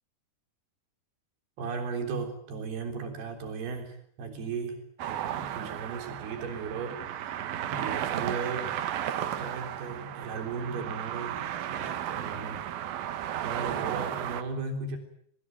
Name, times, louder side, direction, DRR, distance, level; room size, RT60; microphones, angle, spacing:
voice 1, 1.6-8.8 9.3-12.9 13.3-15.0, right 4 dB, 90° right, 6 dB, 5.7 m, -36 dB
sound 1, 5.0-14.4, right 11 dB, 70° right, 3.1 m, -34 dB
23.5 x 20.5 x 9.3 m, 0.67 s
omnidirectional pair, 4.4 m